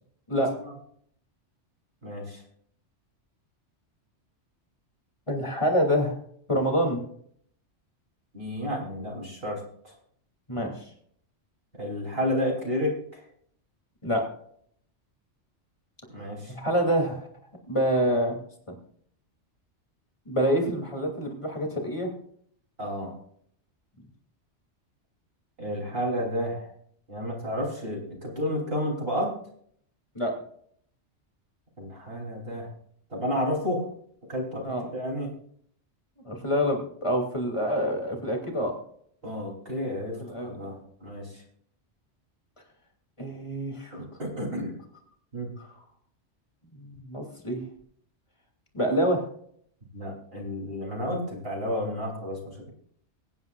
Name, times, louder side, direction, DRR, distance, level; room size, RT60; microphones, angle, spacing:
voice 1, 2.0-2.4 8.3-9.9 11.8-13.2 16.1-16.5 22.8-23.1 25.6-26.7 27.1-29.4 31.8-32.7 33.1-33.9 34.3-35.3 39.2-41.4 43.9-44.8 45.3-45.5 49.9-52.7, equal, 55° right, -2 dB, 3.5 m, -31 dB
voice 2, 5.3-6.1 6.5-7.0 10.5-10.8 14.0-14.2 16.5-17.3 17.7-18.4 20.3-22.1 30.1-30.3 34.6-34.8 36.2-38.8 40.2-40.7 43.2-44.0 46.8-47.6 48.7-49.2, equal, 25° left, 1 dB, 2.8 m, -26 dB
23.5 x 9.5 x 2.4 m, 0.62 s
omnidirectional pair, 1.2 m